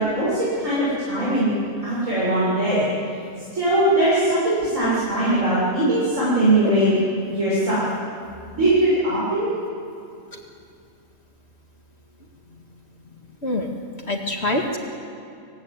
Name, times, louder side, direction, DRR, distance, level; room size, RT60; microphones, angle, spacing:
voice 1, 0.0-1.5 1.8-2.9 3.5-6.9 7.2-7.8 8.5-9.5, right 1 dB, 65° right, -10 dB, 7.8 m, -20 dB
voice 2, 13.4-13.7 14.0-14.8, left 1 dB, 50° left, 1 dB, 2.3 m, -25 dB
24.5 x 18.0 x 9.7 m, 2.5 s
omnidirectional pair, 1.5 m